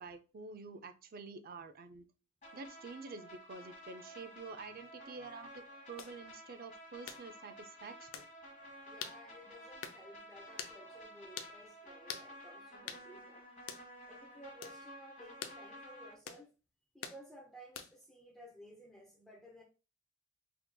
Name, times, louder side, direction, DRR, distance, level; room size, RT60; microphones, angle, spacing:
voice 1, 0.0-2.0 2.5-8.3, right 4 dB, 45° right, 0.4 m, -48 dB
sound 1, 2.4-16.1, equal, 35° left, 1.6 m, -53 dB
sound 2, 6.0-6.1 7.1-7.2 8.1-8.3 9.0-9.2 9.8-10.0 10.6-10.8 11.4-11.5 12.1-12.3 12.9-13.0 13.7-13.9 14.6-14.8 15.4-15.6 16.3-16.4 17.0-17.2 17.7-18.0, left 7 dB, 85° left, 0.5 m, -44 dB
voice 2, 8.9-13.4 14.1-16.5 16.9-19.6, equal, ahead, 0.6 m, -56 dB
5.9 x 2.8 x 2.2 m
head